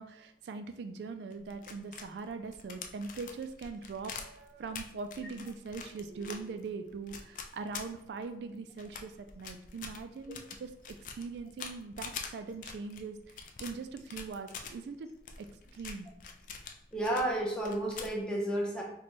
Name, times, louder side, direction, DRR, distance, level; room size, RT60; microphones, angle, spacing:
voice 1, 0.0-13.2 13.6-15.1 15.4-15.5 15.7-16.1, right 4 dB, 75° right, 8 dB, 0.3 m, -41 dB
sound 1, 1.3-8.4 8.8-14.7 15.2-17.3 17.6-18.2, left 6 dB, 45° left, 0.3 m, -45 dB
voice 2, 16.9-18.8, right 1 dB, 5° left, -3 dB, 0.6 m, -31 dB
4.1 x 2.2 x 3.0 m, 0.74 s
head